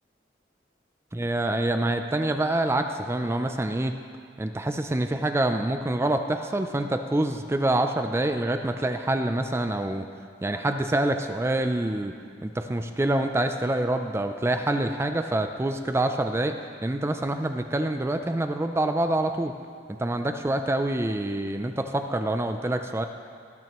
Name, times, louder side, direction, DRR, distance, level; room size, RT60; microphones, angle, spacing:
voice 1, 1.1-3.9 4.4-10.1 10.4-12.1 12.4-16.5 16.8-19.5 19.9-23.1, right 1 dB, 15° right, 7 dB, 0.4 m, -26 dB
19.0 x 9.1 x 3.0 m, 2.2 s
head